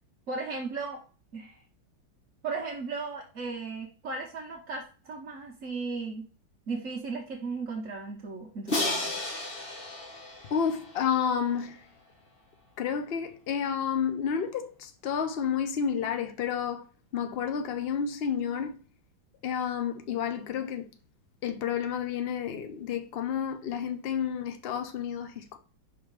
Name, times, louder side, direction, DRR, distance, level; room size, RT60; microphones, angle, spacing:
voice 1, 0.3-1.0 1.3-1.6 2.4-6.3 6.7-9.1, right 4 dB, 45° right, 1.4 m, -36 dB
Crash cymbal, 8.7-11.6, left 2 dB, 30° left, 1.5 m, -33 dB
voice 2, 10.5-11.9 12.8-16.9 17.1-18.8 19.4-20.9 21.4-25.6, left 7 dB, 65° left, 0.6 m, -30 dB
5.6 x 4.2 x 4.8 m
omnidirectional pair, 2.1 m